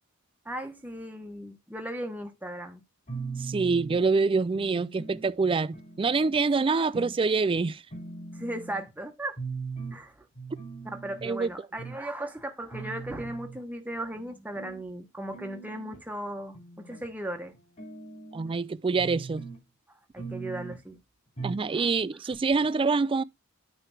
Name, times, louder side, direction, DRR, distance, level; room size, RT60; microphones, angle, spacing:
voice 1, 0.4-2.8 8.3-9.4 9.9-10.3 10.8-17.6 20.1-21.0 21.7-21.9, right 1 dB, 10° right, 1.1 m, -37 dB
sound 1, 3.1-4.0 4.5-5.3 5.7-6.4 6.9-7.2 7.5-7.6 7.9-8.9 9.4-10.0 10.4-11.3 11.8-12.0 12.4-12.5 12.7-13.6 14.2-14.8 15.3-16.0 16.5-17.1 17.5-18.6 19.0-19.6 20.2-20.8 21.4-21.7 22.0-22.1 22.3-22.4, right 4 dB, 35° left, 3.7 m, -40 dB
voice 2, 3.4-7.8 11.2-11.5 18.3-19.5 21.4-23.2, right 4 dB, 25° right, 0.4 m, -26 dB
9.0 x 3.4 x 6.1 m
head